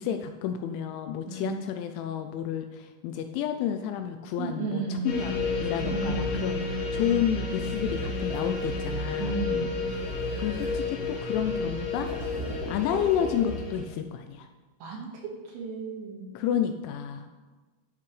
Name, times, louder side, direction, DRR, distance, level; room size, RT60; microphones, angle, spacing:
voice 1, 0.0-9.4 10.4-12.1 12.7-14.5 16.3-17.3, left 9 dB, 85° left, 6 dB, 2.8 m, -30 dB
voice 2, 1.3-1.6 4.4-5.4 5.9-6.4 9.2-9.8 14.8-16.3, right 4 dB, 65° right, -2 dB, 3.1 m, -34 dB
sound 1, 5.1-13.8, left 3 dB, 60° left, 3.6 m, -31 dB
sound 2, 7.7-9.1 9.8-11.4 11.9-13.9, equal, 25° right, 3.0 m, -41 dB
11.0 x 8.5 x 3.3 m, 1.3 s
omnidirectional pair, 5.6 m